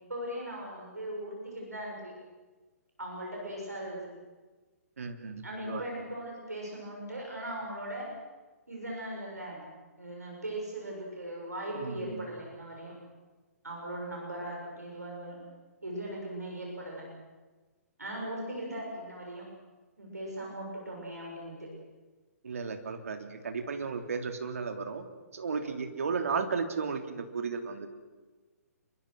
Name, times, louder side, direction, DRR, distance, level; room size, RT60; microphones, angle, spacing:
voice 1, 0.0-2.2 3.0-4.1 5.4-8.1 8.7-9.6 10.0-12.9 13.6-15.4 15.8-17.1 18.0-19.5 20.0-21.7, right 1 dB, 80° right, -1 dB, 6.9 m, -39 dB
voice 2, 5.0-5.8 11.7-12.3 22.4-25.1 25.3-27.9, right 5 dB, 65° right, 6 dB, 2.9 m, -34 dB
26.5 x 24.0 x 6.4 m, 1.3 s
figure-of-eight pair, 125°, 9 cm